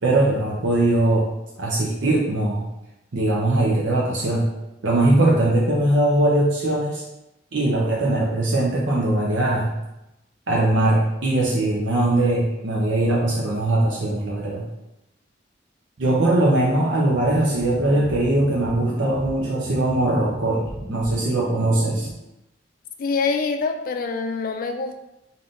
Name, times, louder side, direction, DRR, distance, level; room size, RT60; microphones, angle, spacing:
voice 1, 0.0-1.3 1.6-2.7 3.1-4.5 4.8-7.0 7.5-9.7 10.5-14.7 16.0-20.6 20.9-22.1, right 1 dB, 85° right, -4 dB, 0.7 m, -20 dB
sound 1, 17.1-22.1, right 1 dB, 35° right, 0.6 m, -35 dB
voice 2, 23.0-25.0, left 4 dB, 50° left, 6 dB, 0.4 m, -25 dB
3.6 x 2.8 x 3.8 m, 0.91 s
head